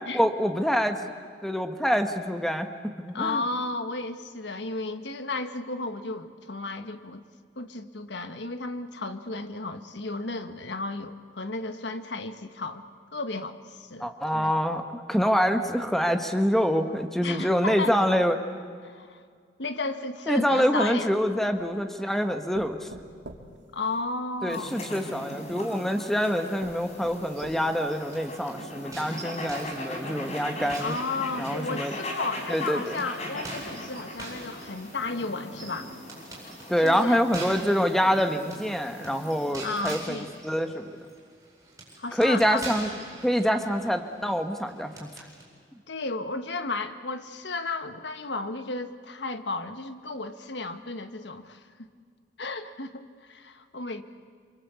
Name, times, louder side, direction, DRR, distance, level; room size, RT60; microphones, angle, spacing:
voice 1, 0.1-1.0 1.4-3.4 14.0-18.4 20.3-22.9 24.4-30.9 31.4-31.9 32.5-33.0 36.7-40.9 42.1-42.9 43.2-45.2, equal, ahead, 6 dB, 1.4 m, -26 dB
voice 2, 3.1-7.2 7.6-12.8 13.1-14.5 17.2-18.0 18.8-19.2 19.6-21.1 23.7-24.7 30.8-35.9 36.8-37.2 39.6-40.3 42.0-42.6 45.9-51.9 52.4-54.0, left 3 dB, 75° left, 9 dB, 1.4 m, -33 dB
sound 1, 20.9-21.8 22.5-24.5 25.5-25.6 26.2-26.3 26.6-28.0 28.4-28.5 28.9-29.0, right 1 dB, 90° right, 2.5 m, -45 dB
sound 2, 24.5-39.5, left 1 dB, 40° left, 4.6 m, -39 dB
sound 3, 26.8-28.4 28.9-31.8 32.3-45.4, right 2 dB, 15° right, 8.0 m, -45 dB
28.0 x 25.0 x 8.3 m, 2.1 s
head